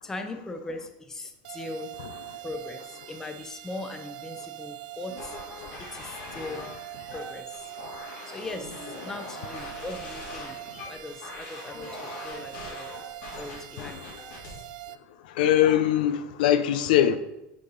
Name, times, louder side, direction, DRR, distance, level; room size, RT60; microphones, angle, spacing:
voice 1, 0.0-1.9 2.4-5.4 5.8-6.7 7.1-7.6 8.3-10.6 10.9-12.9 13.4-14.0, left 2 dB, 10° left, 0.7 m, -39 dB
sound 1, 1.4-15.0, right 15 dB, 90° right, 0.4 m, -43 dB
voice 2, 2.0-2.4 9.7-9.8 13.0-13.1 13.8-14.2 14.9-15.0 15.2-17.2, left 11 dB, 80° left, 0.5 m, -24 dB
sound 2, 5.1-14.7, left 2 dB, 65° left, 2.6 m, -41 dB
6.8 x 5.2 x 4.0 m
supercardioid pair, 145°, 5 cm